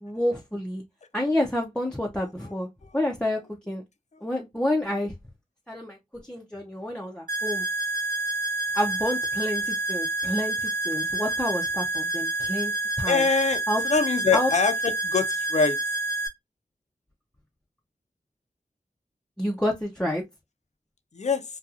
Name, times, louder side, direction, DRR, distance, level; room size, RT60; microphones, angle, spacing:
voice 1, 0.0-0.8 1.1-2.7 2.9-3.4 3.7-3.8 4.2-5.1 5.7-7.6 8.7-12.7 13.0-13.3 13.7-13.8 14.3-14.5 19.4-20.2, left 1 dB, 5° left, 0.6 m, -28 dB
sound 1, 7.3-16.3, right 2 dB, 75° right, 1.1 m, -28 dB
voice 2, 13.1-15.8 21.1-21.4, left 4 dB, 55° left, 0.5 m, -24 dB
2.6 x 2.3 x 2.4 m
cardioid pair, 40°, 14 cm